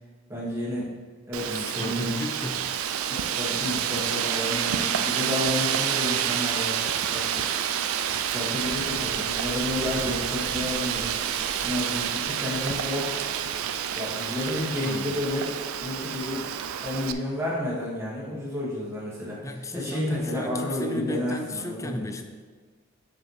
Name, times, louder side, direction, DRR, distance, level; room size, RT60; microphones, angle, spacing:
voice 1, 0.3-0.9 1.3-2.1 3.1-6.8 7.1-7.4 8.2-11.1 11.6-13.3 13.9-15.5 15.8-16.5 16.8-19.5 19.7-22.1, left 1 dB, 15° right, -7 dB, 1.9 m, -31 dB
Wind, 1.3-17.1, right 9 dB, 90° right, 0.4 m, -28 dB
voice 2, 1.5-2.7 14.8-15.1 19.4-22.2, left 2 dB, 15° left, 6 dB, 0.4 m, -34 dB
sound 1, 8.5-16.0 16.3-16.5, right 1 dB, 35° right, 1.0 m, -47 dB
6.8 x 6.7 x 3.3 m, 1.5 s
head